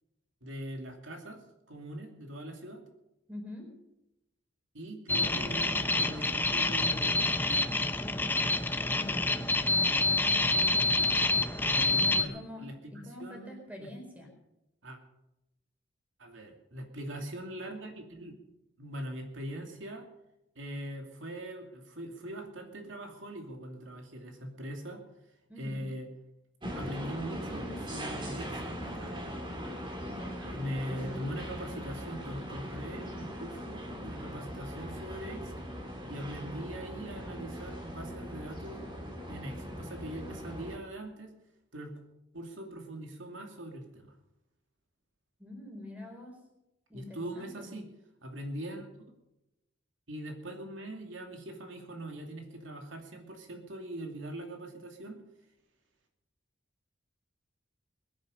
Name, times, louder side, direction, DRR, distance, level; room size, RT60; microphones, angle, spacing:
voice 1, 0.4-1.4 1.7-2.8 4.7-7.8 11.6-13.5 13.8-13.9 14.8-15.0 16.2-18.4 18.8-20.1 20.6-25.0 25.6-26.1 26.7-29.2 30.5-35.7 36.1-38.9 39.3-41.3 41.7-41.9 42.3-44.1 46.9-47.9 48.2-48.9 50.1-55.2, right 1 dB, 75° right, 3 dB, 2.6 m, -41 dB
voice 2, 3.3-3.7 8.9-9.5 11.9-14.3 25.5-25.9 30.1-30.6 45.4-46.4 46.9-47.7, left 1 dB, 10° right, 1 dB, 4.4 m, -45 dB
sound 1, 5.1-12.2, left 2 dB, 10° left, 0.7 m, -27 dB
sound 2, 26.6-40.8, equal, 25° right, 2.8 m, -40 dB
21.5 x 10.5 x 5.5 m, 0.91 s
head